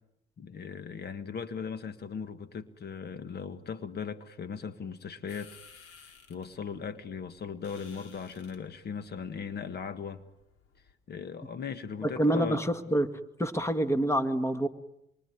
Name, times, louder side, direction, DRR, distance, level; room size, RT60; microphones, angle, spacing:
voice 1, 0.4-10.2 11.1-12.6, left 6 dB, 55° left, 1.6 m, -38 dB
sound 1, 5.3-10.9, left 6 dB, 85° left, 5.0 m, -57 dB
voice 2, 12.0-13.1 13.4-14.7, right 1 dB, 15° left, 2.2 m, -27 dB
27.0 x 23.5 x 9.5 m
cardioid pair, 90°, 20 cm